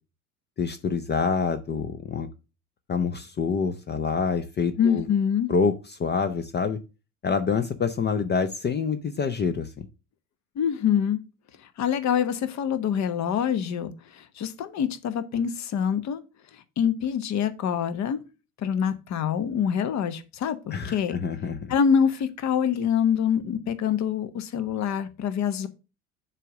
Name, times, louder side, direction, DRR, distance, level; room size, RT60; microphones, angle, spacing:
voice 1, 0.6-2.3 2.9-5.1 5.5-6.8 7.2-9.9 20.7-21.7, left 5 dB, 25° left, 0.7 m, -26 dB
voice 2, 4.8-5.5 10.6-11.2 11.8-16.2 16.5-18.2 18.6-21.2 21.7-25.7, left 8 dB, 40° left, 1.1 m, -25 dB
6.8 x 3.7 x 6.2 m
figure-of-eight pair, 65°, 43 cm